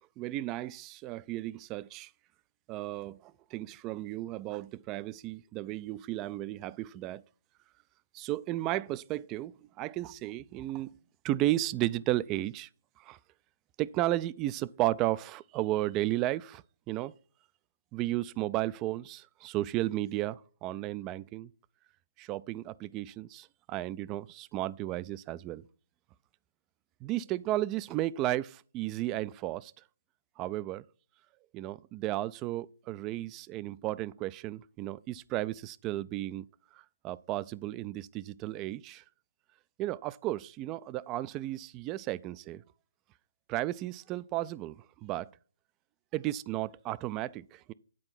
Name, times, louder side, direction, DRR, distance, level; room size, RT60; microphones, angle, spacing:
voice 1, 0.2-2.1 2.7-7.2 8.1-10.9 11.2-12.7 13.0-13.2 13.8-17.1 17.9-21.5 22.2-25.6 27.0-29.7 30.4-30.8 31.5-36.5 36.7-39.0 39.8-42.6 43.5-45.3 46.1-47.7, right 15 dB, 20° right, 0.3 m, -34 dB
9.8 x 4.4 x 5.8 m
figure-of-eight pair, 140°, 0 cm